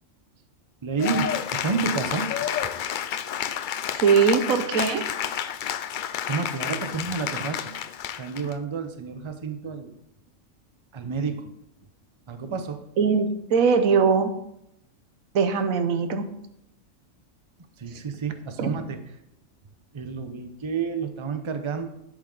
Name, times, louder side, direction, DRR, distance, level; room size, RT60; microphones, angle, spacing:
voice 1, 0.8-2.3 6.3-7.7 8.2-9.9 10.9-11.5 12.3-12.8 17.8-19.0 19.9-21.9, right 5 dB, 30° right, 8 dB, 0.7 m, -30 dB
Cheering / Applause, 1.0-8.5, left 9 dB, 85° left, 0.4 m, -30 dB
voice 2, 3.9-5.0 13.0-14.3 15.3-16.2 18.6-18.8, right 6 dB, 90° right, 9 dB, 1.3 m, -21 dB
11.0 x 7.8 x 3.9 m, 0.82 s
omnidirectional pair, 1.4 m